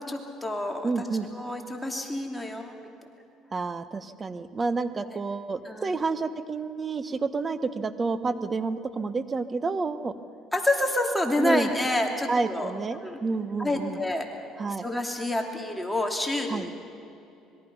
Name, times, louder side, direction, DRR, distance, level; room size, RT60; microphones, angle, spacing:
voice 1, 0.0-0.9 1.3-2.9 5.6-6.0 10.5-12.7 13.0-13.2 13.6-14.3 14.8-16.7, left 1 dB, 5° left, 2 dB, 2.7 m, -28 dB
voice 2, 0.8-1.3 3.5-10.1 11.4-11.7 12.3-14.0 14.6-14.8 16.5-16.7, right 4 dB, 30° right, 11 dB, 1.2 m, -29 dB
26.0 x 21.5 x 5.6 m, 2.8 s
supercardioid pair, 85°, 0 cm